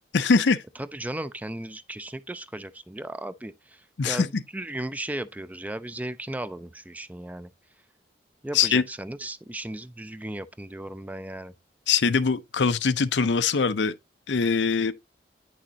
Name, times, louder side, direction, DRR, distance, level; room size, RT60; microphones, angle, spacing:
voice 1, 0.1-0.6 4.0-4.3 8.5-8.8 11.9-13.9 14.3-14.9, left 5 dB, 80° left, 0.6 m, -22 dB
voice 2, 0.8-7.5 8.4-11.5, right 1 dB, 10° right, 0.4 m, -36 dB
9.4 x 6.3 x 2.9 m
head